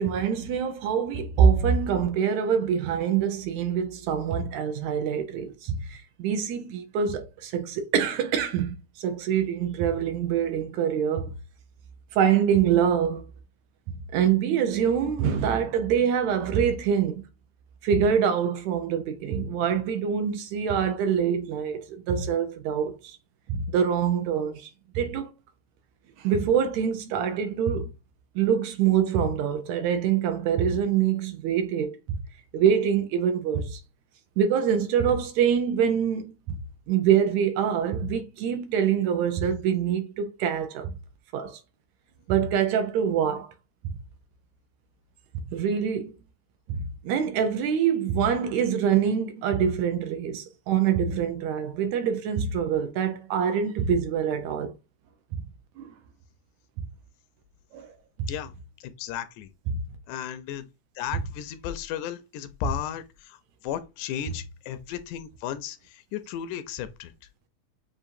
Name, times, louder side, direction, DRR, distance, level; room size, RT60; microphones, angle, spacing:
voice 1, 0.0-11.3 12.1-13.3 14.1-17.2 17.8-23.2 23.5-24.7 25.0-25.3 26.2-27.9 28.4-32.2 32.5-33.8 34.4-36.6 36.9-41.0 41.3-41.6 42.3-43.5 43.8-44.0 45.5-46.1 46.7-54.7 55.3-55.4 55.8-55.9 57.7-57.9 58.2-58.3 59.7-59.8 62.6-62.7, right 8 dB, 80° right, 1.8 m, -25 dB
voice 2, 58.8-59.5 60.1-60.7 61.0-63.4 63.6-67.1, left 10 dB, 85° left, 2.0 m, -34 dB
7.3 x 2.5 x 2.6 m
omnidirectional pair, 3.5 m